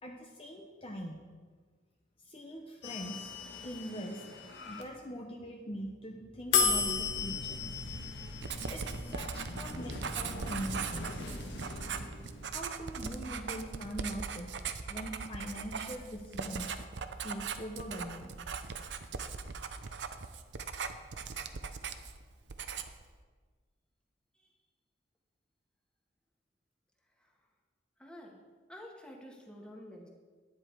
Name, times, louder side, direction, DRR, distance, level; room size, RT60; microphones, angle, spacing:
voice 1, 0.0-1.2 2.2-3.3 3.6-4.4 4.7-8.0 8.7-11.8 12.5-14.5 14.9-16.7 17.2-18.3, equal, 30° left, 0 dB, 1.0 m, -42 dB
sound 1, 2.8-4.8 6.5-12.5, left 5 dB, 75° left, 1.4 m, -35 dB
Writing, 8.4-22.2 22.5-23.0, right 5 dB, 70° right, 0.7 m, -40 dB
voice 2, 28.0-28.4 28.7-30.1, left 1 dB, 5° left, -1 dB, 1.6 m, -49 dB
10.5 x 10.0 x 4.7 m, 1.5 s
head